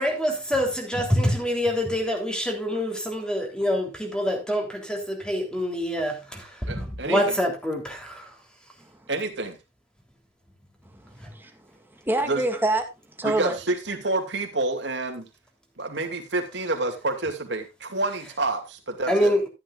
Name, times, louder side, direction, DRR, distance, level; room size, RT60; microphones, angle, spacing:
voice 1, 0.0-8.2 19.1-19.5, equal, 5° left, 3.3 m, -26 dB
voice 2, 6.7-7.4 9.1-9.5 12.3-12.4 13.2-15.3 15.8-19.3, right 2 dB, 70° right, 2.4 m, -28 dB
voice 3, 10.8-12.8 13.2-13.6, right 2 dB, 10° right, 2.0 m, -27 dB
13.0 x 11.0 x 2.5 m
head